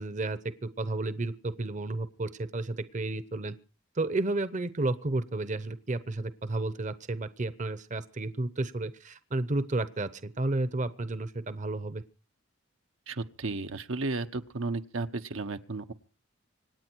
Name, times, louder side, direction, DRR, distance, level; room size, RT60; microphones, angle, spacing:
voice 1, 0.0-3.5 3.9-12.0, right 2 dB, 35° right, 14 dB, 0.8 m, -32 dB
voice 2, 13.1-15.9, right 3 dB, 80° right, 7 dB, 1.0 m, -34 dB
26.0 x 9.6 x 4.6 m, 0.35 s
head